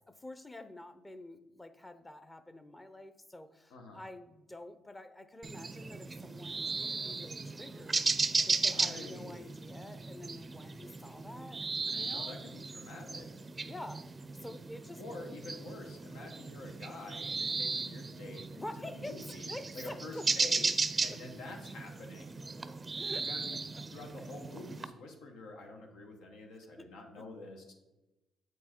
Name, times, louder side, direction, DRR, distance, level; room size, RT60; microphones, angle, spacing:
voice 1, 0.1-11.6 11.9-12.3 13.6-15.3 18.5-20.5 21.1-21.2 22.6-23.3 23.7-23.8 26.8-26.9, left 1 dB, 15° left, 11 dB, 0.6 m, -48 dB
voice 2, 3.7-4.0 8.6-9.5 11.8-13.3 15.0-18.5 18.8-20.7 21.0-22.4 23.2-23.6 23.9-27.7, left 2 dB, 90° left, 1 dB, 1.0 m, -47 dB
sound 1, 5.4-24.9, right 4 dB, 30° right, 0.4 m, -36 dB
8.0 x 4.6 x 4.3 m, 1.0 s
cardioid pair, 90°, 0 cm